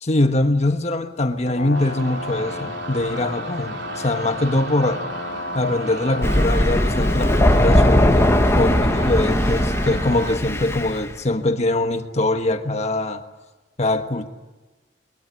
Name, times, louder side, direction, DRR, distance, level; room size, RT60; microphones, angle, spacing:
voice 1, 0.0-5.0 5.5-13.2 13.8-14.3, left 2 dB, 40° left, 1.4 m, -23 dB
Brass instrument, 1.4-8.6, left 3 dB, 80° left, 1.8 m, -33 dB
sound 1, 1.7-10.4, right 3 dB, 85° right, 2.7 m, -34 dB
Thunder, 6.2-11.0, left 1 dB, 15° left, 1.2 m, -18 dB
22.5 x 22.5 x 9.7 m
head